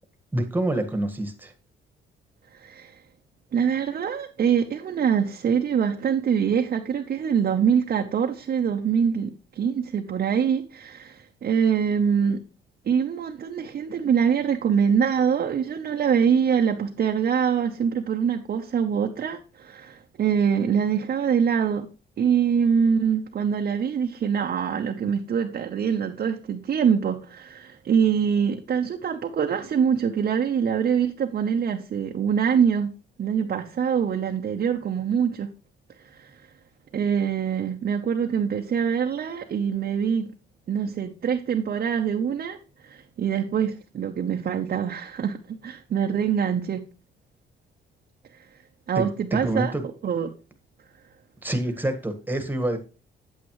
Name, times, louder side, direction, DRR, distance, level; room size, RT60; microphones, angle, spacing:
voice 1, 0.3-1.5 48.9-49.1 49.3-49.8 51.4-52.8, right 1 dB, 10° right, 1.5 m, -26 dB
voice 2, 2.5-3.1 3.5-12.4 12.8-21.9 22.2-32.9 33.2-35.5 35.9-36.5 36.9-40.3 40.7-46.8 48.3-48.6 48.9-49.7 50.0-50.3 50.9-51.0, right 7 dB, 50° right, 0.8 m, -24 dB
8.4 x 8.3 x 3.1 m
cardioid pair, 90°, 20 cm